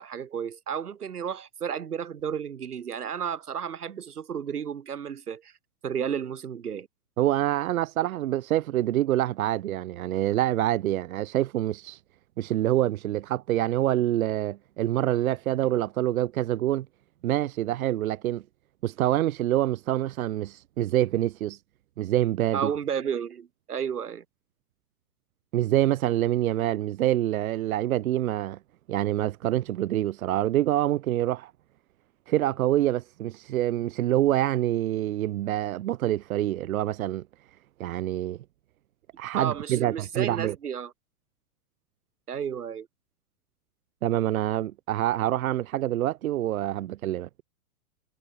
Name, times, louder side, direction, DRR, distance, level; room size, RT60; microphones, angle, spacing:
voice 1, 0.0-5.5 5.8-6.9 22.5-24.2 39.4-40.9 42.3-42.9, right 8 dB, 90° right, 1.7 m, -32 dB
voice 2, 7.2-12.0 12.4-16.9 17.2-18.4 18.8-21.6 22.0-22.7 25.5-28.6 28.9-31.5 32.3-37.2 37.8-38.4 39.2-40.5 44.0-47.4, right 13 dB, 70° right, 1.0 m, -26 dB
hypercardioid pair, 120°, 44 cm